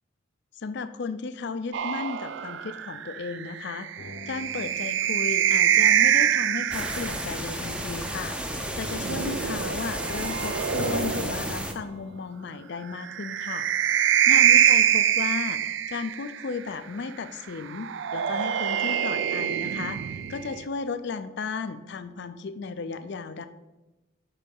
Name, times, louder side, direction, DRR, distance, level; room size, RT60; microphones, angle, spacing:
voice 1, 0.5-3.9 4.3-8.4 8.8-13.7 14.3-23.5, left 4 dB, 55° left, 11 dB, 0.4 m, -34 dB
sound 1, 1.7-7.3 8.6-11.6 13.0-16.4 17.7-20.6, right 9 dB, 60° right, 0.4 m, -25 dB
sound 2, 4.0-7.9 8.8-8.9 10.8-14.1 14.4-14.5, left 1 dB, 85° left, 1.0 m, -43 dB
sound 3, 6.7-11.7, equal, 5° right, 0.6 m, -33 dB
10.0 x 3.9 x 5.3 m, 1.1 s
head